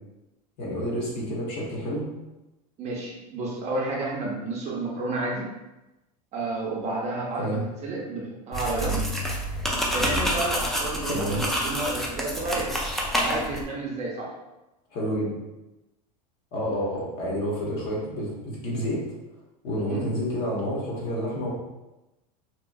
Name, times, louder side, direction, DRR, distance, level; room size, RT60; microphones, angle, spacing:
voice 1, 0.6-2.0 7.4-7.6 11.1-11.4 14.9-15.3 16.5-19.0 19.6-21.5, equal, 50° left, -4 dB, 1.1 m, -29 dB
voice 2, 2.8-5.5 6.3-9.0 9.9-12.8 13.1-14.3 19.8-20.1, right 2 dB, 35° right, -3 dB, 0.7 m, -31 dB
sound 1, 8.5-13.6, equal, ahead, 0.3 m, -28 dB
2.9 x 2.4 x 2.3 m, 0.99 s
supercardioid pair, 125°, 20 cm